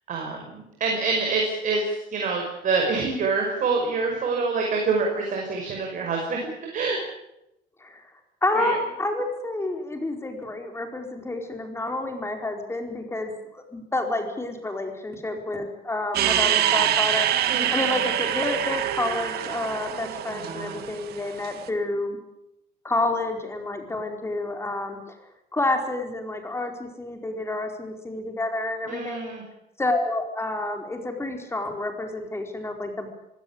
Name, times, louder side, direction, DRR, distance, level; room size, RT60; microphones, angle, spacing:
voice 1, 0.1-6.4 6.7-7.0 8.5-8.7 17.5-17.7 20.4-20.8 28.8-29.4, right 4 dB, 50° right, 1 dB, 5.8 m, -26 dB
voice 2, 7.8-8.1 8.4-22.2 22.8-25.2 25.5-29.3 29.8-33.1, left 2 dB, 15° left, 4 dB, 4.7 m, -29 dB
sound 1, 16.1-21.5, right 11 dB, 70° right, 2.1 m, -25 dB
25.0 x 16.5 x 8.7 m, 0.86 s
cardioid pair, 110°, 17 cm